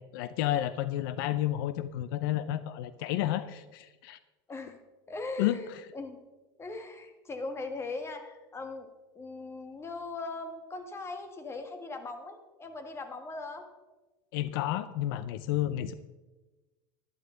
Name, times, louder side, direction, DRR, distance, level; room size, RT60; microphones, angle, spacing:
voice 1, 0.0-4.2 5.4-5.8 14.3-15.9, left 13 dB, 80° left, 14 dB, 0.6 m, -31 dB
voice 2, 5.1-6.2 6.6-8.9 9.1-13.7, left 3 dB, 20° left, 7 dB, 1.6 m, -39 dB
12.0 x 11.5 x 3.8 m, 1.1 s
supercardioid pair, 120°, 12 cm